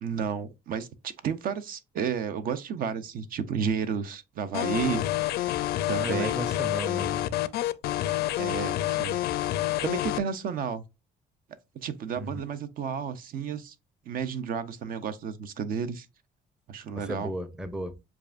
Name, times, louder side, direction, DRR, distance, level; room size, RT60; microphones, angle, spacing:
voice 1, 0.0-6.4 8.4-9.2 9.8-10.8 11.8-13.7 14.1-16.1 16.7-17.3, right 7 dB, 60° right, 0.6 m, -32 dB
sound 1, 4.5-10.2, left 14 dB, 70° left, 0.5 m, -28 dB
voice 2, 5.9-7.3 12.2-12.4 16.9-18.0, right 1 dB, 5° right, 0.5 m, -34 dB
7.1 x 2.5 x 2.5 m
cardioid pair, 110°, 17 cm